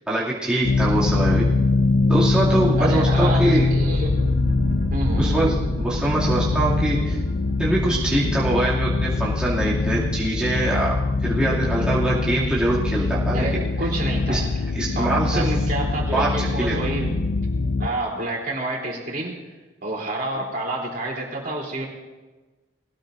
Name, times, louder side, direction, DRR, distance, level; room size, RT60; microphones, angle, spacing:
voice 1, 0.1-1.5 2.1-3.7 5.2-7.2 7.6-10.9 11.2-13.6 14.3-14.4 14.7-15.5 16.1-16.9, right 1 dB, 5° right, -9 dB, 2.6 m, -23 dB
sound 1, 0.6-17.9, left 3 dB, 65° left, 0.7 m, -23 dB
sound 2, 2.3-11.6 11.9-12.0, equal, 75° right, 2.1 m, -33 dB
voice 2, 2.8-3.4 3.7-4.2 4.9-5.4 13.3-14.7 15.0-17.3 17.8-19.4 19.8-21.9, right 2 dB, 50° right, -2 dB, 3.4 m, -29 dB
21.0 x 18.0 x 2.7 m, 1.2 s
head